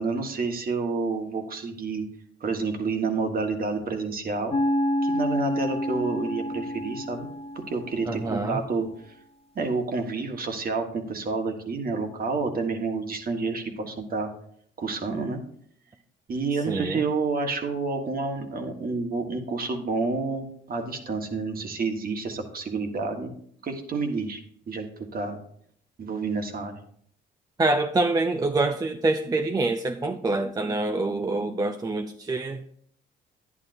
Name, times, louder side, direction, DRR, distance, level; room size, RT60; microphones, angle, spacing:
voice 1, 0.0-2.0 2.4-4.5 5.0-7.3 7.5-9.1 9.5-14.3 14.8-15.4 16.3-23.3 23.6-24.4 24.7-24.9 25.1-25.4 26.0-26.7, right 4 dB, 45° right, 1.4 m, -29 dB
sound 1, 4.5-8.7, left 1 dB, 30° left, 0.7 m, -29 dB
voice 2, 8.1-8.6 16.7-17.0 27.6-32.6, right 2 dB, 20° right, 0.4 m, -26 dB
10.5 x 9.7 x 2.6 m
cardioid pair, 90°, 20 cm